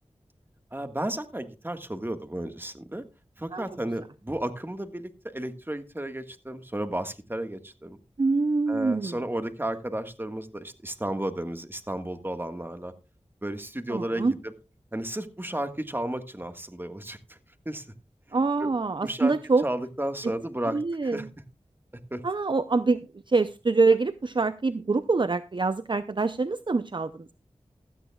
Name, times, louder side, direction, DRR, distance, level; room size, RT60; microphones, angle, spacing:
voice 1, 0.7-3.0 3.4-8.0 8.7-12.9 13.4-14.5 14.9-17.4 17.6-17.8 18.3-18.7 19.0-19.3 19.6-21.3 22.1-22.2, right 1 dB, 20° right, 8 dB, 1.6 m, -33 dB
voice 2, 8.2-9.1 13.9-14.3 18.3-19.6 20.7-21.3 22.2-23.0 23.3-27.3, right 3 dB, 45° right, 12 dB, 0.6 m, -25 dB
16.5 x 13.0 x 2.3 m, 0.29 s
wide cardioid pair, 40°, 12 cm